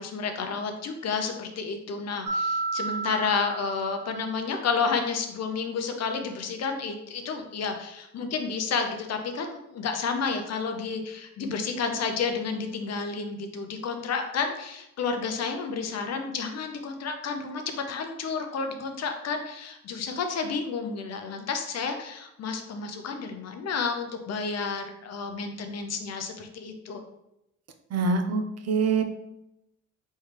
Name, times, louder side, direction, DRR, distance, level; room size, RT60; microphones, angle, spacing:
voice 1, 0.0-27.0, left 5 dB, 55° left, 5 dB, 0.8 m, -31 dB
Mallet percussion, 2.3-4.6, right 3 dB, 75° right, 1.1 m, -32 dB
voice 2, 27.9-29.0, right 4 dB, 55° right, 6 dB, 0.7 m, -25 dB
4.4 x 3.2 x 3.3 m, 0.85 s
cardioid pair, 90°, 30 cm